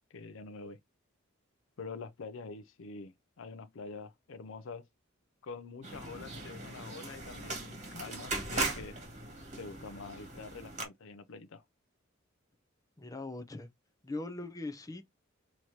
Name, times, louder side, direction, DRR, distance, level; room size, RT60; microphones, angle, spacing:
voice 1, 0.1-0.8 1.8-4.9 5.4-9.0 9.6-11.6, left 4 dB, 70° left, 0.5 m, -46 dB
sound 1, 5.8-10.8, right 3 dB, 35° right, 2.0 m, -39 dB
voice 2, 13.0-13.7 14.0-15.1, left 2 dB, 15° left, 0.7 m, -40 dB
6.2 x 3.0 x 2.7 m
head